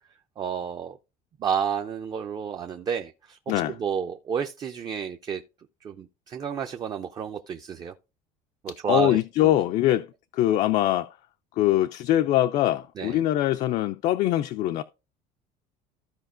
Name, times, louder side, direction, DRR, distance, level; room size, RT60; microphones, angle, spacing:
voice 1, 0.4-1.0 1.4-5.4 5.8-7.9 8.6-9.5 9.9-10.0 13.0-13.2, right 7 dB, 25° right, 0.4 m, -31 dB
voice 2, 8.7-10.1 10.3-11.1 11.6-14.8, left 14 dB, 45° left, 0.4 m, -23 dB
15.0 x 4.9 x 2.5 m
cardioid pair, 175°, 17 cm